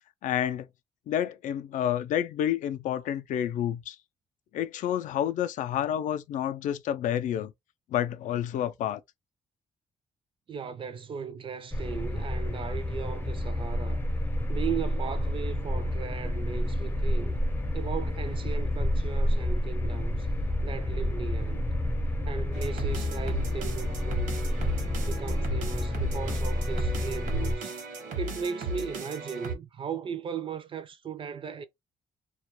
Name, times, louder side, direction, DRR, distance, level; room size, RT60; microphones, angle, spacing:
voice 1, 0.2-0.7 1.1-4.0 4.5-7.5 7.9-9.0, left 10 dB, 70° left, 0.4 m, -29 dB
voice 2, 10.5-14.0 14.5-17.4 17.7-20.3 20.6-21.6 22.3-24.4 25.0-27.8 28.2-31.7, right 7 dB, 40° right, 0.4 m, -37 dB
sound 1, 11.7-27.6, left 1 dB, 15° left, 0.5 m, -29 dB
sound 2, 22.5-29.5, right 2 dB, 80° right, 0.9 m, -36 dB
2.3 x 2.2 x 2.9 m
cardioid pair, 95°, 14 cm